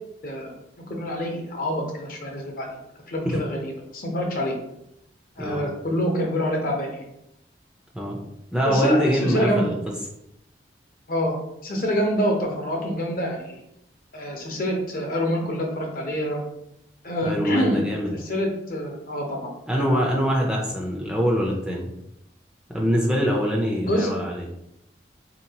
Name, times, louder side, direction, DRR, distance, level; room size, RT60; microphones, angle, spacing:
voice 1, 0.9-2.7 3.1-4.6 5.4-7.0 8.6-9.7 11.1-11.4 11.6-13.6 14.1-16.4 17.0-17.9 18.1-20.4 23.9-24.1, equal, 50° left, 1 dB, 0.7 m, -26 dB
voice 2, 8.5-9.7 17.2-18.1 19.7-21.9 22.7-24.5, equal, 5° right, -2 dB, 0.4 m, -23 dB
3.7 x 2.8 x 2.8 m, 0.82 s
head